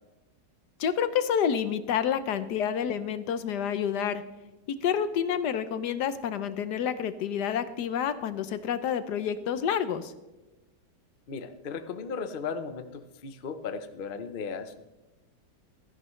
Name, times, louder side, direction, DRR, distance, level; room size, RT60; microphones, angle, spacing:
voice 1, 0.8-4.2 4.7-10.1, left 8 dB, 70° left, 12 dB, 1.3 m, -28 dB
voice 2, 11.3-14.8, left 5 dB, 45° left, 9 dB, 0.7 m, -36 dB
16.5 x 13.0 x 3.2 m, 1.1 s
omnidirectional pair, 1.9 m